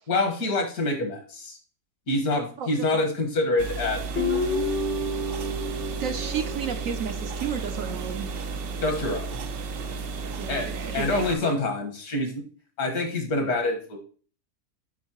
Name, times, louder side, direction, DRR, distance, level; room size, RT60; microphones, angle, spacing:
voice 1, 0.1-1.6 2.1-4.4 8.8-9.4 10.5-12.4 12.8-14.0, left 2 dB, 70° left, 4 dB, 1.8 m, -26 dB
voice 2, 2.6-3.1 6.0-8.3 10.2-11.5, right 7 dB, 65° right, 7 dB, 0.9 m, -33 dB
sound 1, 3.6-11.3, right 4 dB, 85° right, 0.5 m, -33 dB
Guitar, 4.1-7.4, left 2 dB, 40° left, 0.8 m, -30 dB
7.2 x 5.2 x 2.9 m, 0.40 s
omnidirectional pair, 1.7 m